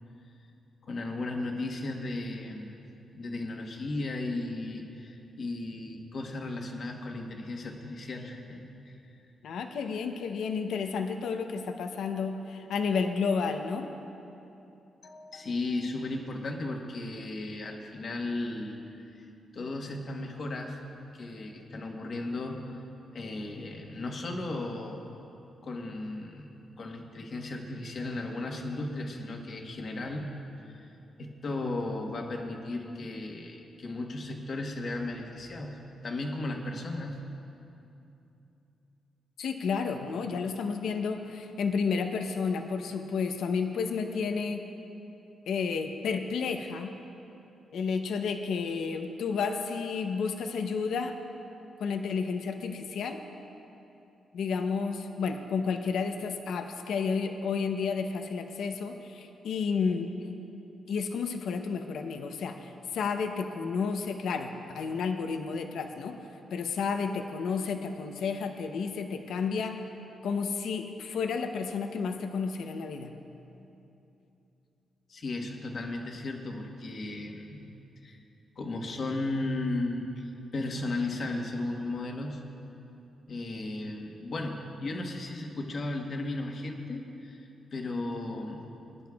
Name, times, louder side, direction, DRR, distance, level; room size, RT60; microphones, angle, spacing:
voice 1, 0.8-2.8 3.1-9.0 15.0-18.8 19.1-19.3 19.5-20.8 21.1-22.8 23.1-25.1 25.6-30.3 30.7-30.9 31.2-35.8 36.0-37.2 75.1-77.7 78.0-78.2 78.6-82.4 83.3-88.7, left 2 dB, 45° left, 2 dB, 1.2 m, -35 dB
voice 2, 9.4-13.9 39.4-44.6 45.5-46.9 47.7-51.2 51.8-53.2 54.3-60.1 60.9-66.2 66.5-69.8 70.2-73.1, left 5 dB, 80° left, 5 dB, 0.7 m, -31 dB
21.5 x 11.0 x 2.3 m, 2.8 s
wide cardioid pair, 160°, 0 cm